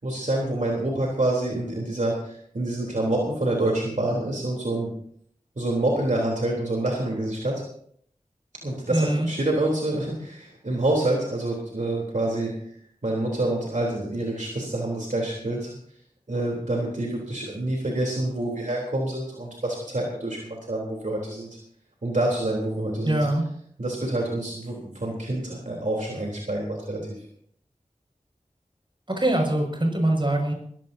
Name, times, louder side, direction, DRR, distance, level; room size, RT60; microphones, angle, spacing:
voice 1, 0.0-4.9 5.6-7.5 8.6-12.8 13.0-15.7 16.3-21.6 22.0-23.2 23.8-27.0, right 1 dB, 70° right, -2 dB, 3.7 m, -27 dB
voice 2, 8.9-9.3 23.0-23.4 29.1-30.5, right 1 dB, 35° right, 2 dB, 6.3 m, -23 dB
22.0 x 16.0 x 2.8 m, 0.64 s
wide cardioid pair, 40°, 13 cm